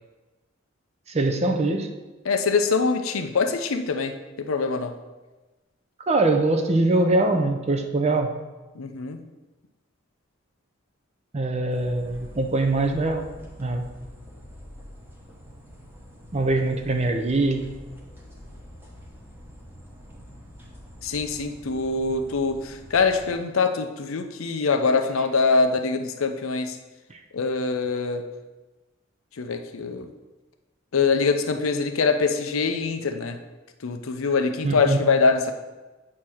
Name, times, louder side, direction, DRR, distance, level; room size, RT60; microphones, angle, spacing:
voice 1, 1.1-1.9 6.1-8.4 11.3-13.3 13.6-13.9 16.3-17.7 27.1-27.2 34.6-35.0, right 2 dB, 30° right, 5 dB, 0.6 m, -23 dB
voice 2, 2.3-4.9 8.8-9.2 21.0-26.8 27.3-28.2 29.4-30.1 30.9-33.4 33.8-35.5, left 4 dB, 85° left, 7 dB, 0.6 m, -24 dB
sound 1, 11.7-23.3, equal, 10° right, 1.1 m, -45 dB
8.6 x 2.9 x 6.3 m, 1.2 s
head